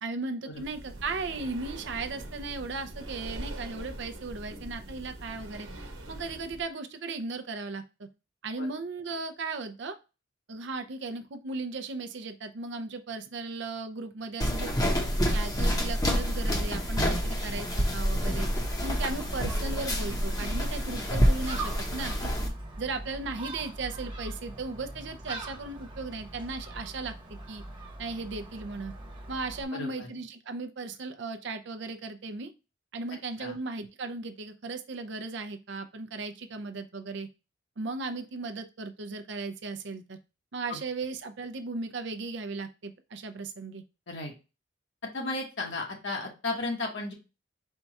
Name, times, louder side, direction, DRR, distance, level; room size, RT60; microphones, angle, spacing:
voice 1, 0.0-5.7 6.1-8.1 8.4-10.0 10.5-14.9 15.3-18.5 18.8-22.3 22.8-27.6 28.0-28.9 29.3-32.5 32.9-37.3 37.8-40.2 40.5-43.8, right 3 dB, 60° right, 7 dB, 0.5 m, -36 dB
Breathing, 0.5-6.7, right 1 dB, 80° right, 1.1 m, -42 dB
sound 1, 14.4-22.5, equal, 20° left, 0.8 m, -28 dB
Gull seagull, 18.2-29.6, right 2 dB, 25° right, 0.8 m, -42 dB
voice 2, 29.7-30.1 33.4-33.6 40.7-40.8 44.1-44.3 45.1-47.1, left 2 dB, 60° left, 0 dB, 1.2 m, -34 dB
4.5 x 2.3 x 4.0 m, 0.29 s
head